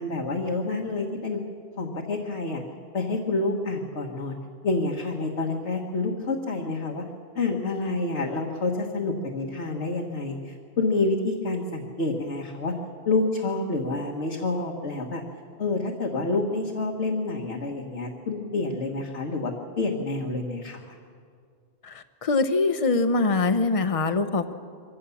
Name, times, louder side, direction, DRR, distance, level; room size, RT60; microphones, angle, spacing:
voice 1, 0.0-1.4 1.8-2.6 2.9-4.3 4.6-7.1 7.4-12.7 13.1-15.2 15.6-20.8, left 3 dB, 80° left, 0 dB, 1.7 m, -28 dB
voice 2, 22.2-24.5, left 3 dB, 35° left, 10 dB, 0.9 m, -23 dB
23.5 x 16.5 x 7.0 m, 2.2 s
omnidirectional pair, 1.1 m